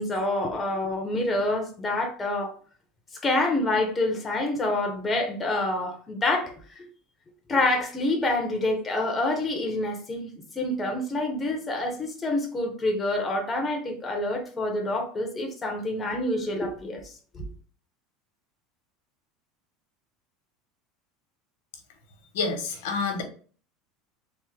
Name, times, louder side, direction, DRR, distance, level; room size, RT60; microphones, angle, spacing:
voice 1, 0.0-2.5 3.2-6.5 7.5-17.0 17.3-17.4, left 2 dB, 15° left, 2 dB, 0.6 m, -27 dB
voice 2, 22.3-23.2, left 4 dB, 85° left, 4 dB, 0.9 m, -28 dB
3.4 x 2.0 x 3.1 m, 0.42 s
supercardioid pair, 160°, 0 cm